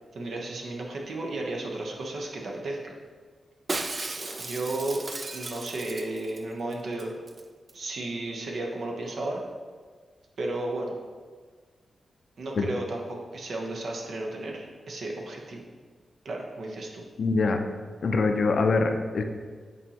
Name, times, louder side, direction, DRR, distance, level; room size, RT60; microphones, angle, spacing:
voice 1, 0.1-2.9 4.4-5.1 5.3-7.2 7.7-9.4 10.4-10.9 12.4-15.6 16.2-17.0, right 2 dB, 70° right, 0 dB, 0.9 m, -33 dB
Shatter, 3.7-6.4 6.7-6.8 7.0-7.4 7.7-7.8, right 3 dB, 35° right, 0.4 m, -35 dB
voice 2, 17.2-17.6 18.0-19.2, left 3 dB, 65° left, 5 dB, 0.5 m, -24 dB
8.2 x 4.2 x 2.9 m, 1.5 s
wide cardioid pair, 110°, 0 cm